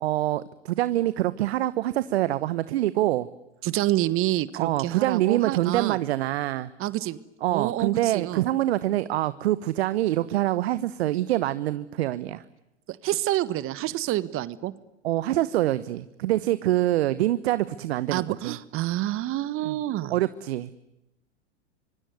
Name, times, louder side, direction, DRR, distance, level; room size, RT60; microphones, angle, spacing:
voice 1, 0.0-3.3 4.5-6.7 7.4-12.4 15.0-18.6 19.6-19.8 20.1-20.7, right 14 dB, 65° right, 15 dB, 1.2 m, -25 dB
voice 2, 3.6-6.0 6.8-7.2 7.5-8.4 12.9-14.7 18.1-20.1, right 15 dB, 40° right, 17 dB, 1.4 m, -28 dB
26.0 x 24.0 x 9.5 m, 0.91 s
hypercardioid pair, 95°, 34 cm